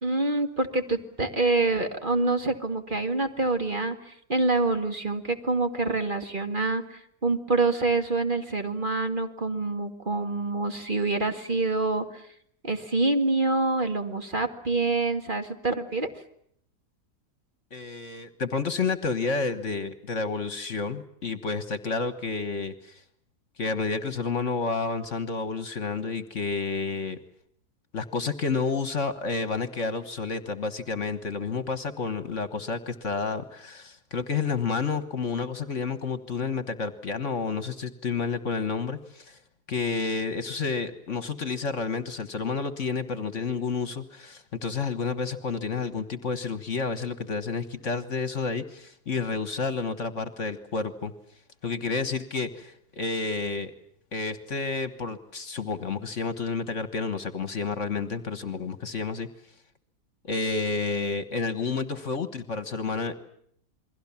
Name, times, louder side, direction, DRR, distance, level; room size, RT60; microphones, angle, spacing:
voice 1, 0.0-12.2 12.6-16.2, right 3 dB, 30° right, 6 dB, 2.2 m, -26 dB
voice 2, 17.7-23.0 23.6-27.2 27.9-39.4 39.7-51.1 51.6-53.7 54.1-59.3 60.2-63.1, left 4 dB, 50° left, 12 dB, 1.7 m, -30 dB
29.0 x 22.0 x 7.2 m, 0.68 s
omnidirectional pair, 1.7 m